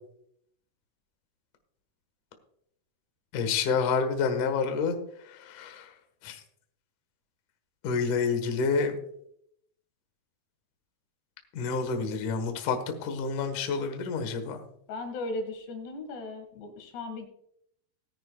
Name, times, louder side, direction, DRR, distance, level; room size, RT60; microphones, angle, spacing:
voice 1, 3.3-5.0 5.3-5.9 6.2-6.4 7.8-9.0 11.5-14.6, left 5 dB, 60° left, 6 dB, 2.6 m, -28 dB
voice 2, 14.9-17.3, left 2 dB, 80° left, 6 dB, 3.9 m, -37 dB
20.0 x 10.0 x 2.3 m, 0.72 s
omnidirectional pair, 4.8 m